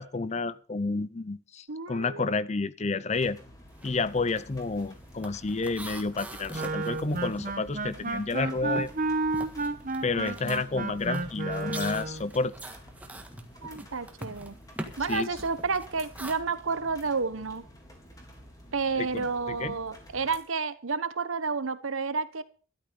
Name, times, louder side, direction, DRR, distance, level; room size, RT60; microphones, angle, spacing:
voice 1, 0.0-3.4 3.8-8.9 10.0-12.5 15.1-15.3 19.0-19.8, left 3 dB, 35° left, 0.6 m, -30 dB
voice 2, 1.7-2.3 13.6-14.6 15.0-17.7 18.7-22.4, right 4 dB, 80° right, 1.1 m, -30 dB
sound 1, 3.1-20.4, equal, 15° left, 3.5 m, -51 dB
sound 2, 3.7-4.0 4.3-8.3 8.6-16.3, right 1 dB, 5° right, 1.6 m, -44 dB
Wind instrument woodwind instrument, 6.5-12.3, right 3 dB, 40° right, 1.3 m, -31 dB
13.0 x 12.0 x 5.3 m
head